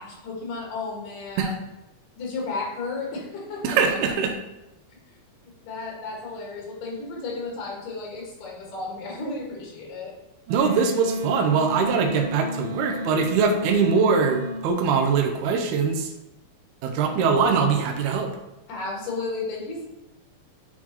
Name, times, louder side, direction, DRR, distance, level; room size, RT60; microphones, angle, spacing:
voice 1, 0.0-1.6 2.2-4.0 5.4-10.1 18.7-19.9, left 3 dB, 90° left, -3 dB, 3.4 m, -33 dB
voice 2, 3.6-4.3 10.5-16.1 16.8-18.3, right 5 dB, 75° right, 3 dB, 2.0 m, -22 dB
Wind instrument woodwind instrument, 10.5-14.6, left 1 dB, 55° right, 2.4 m, -33 dB
8.7 x 4.2 x 2.9 m, 0.98 s
omnidirectional pair, 3.8 m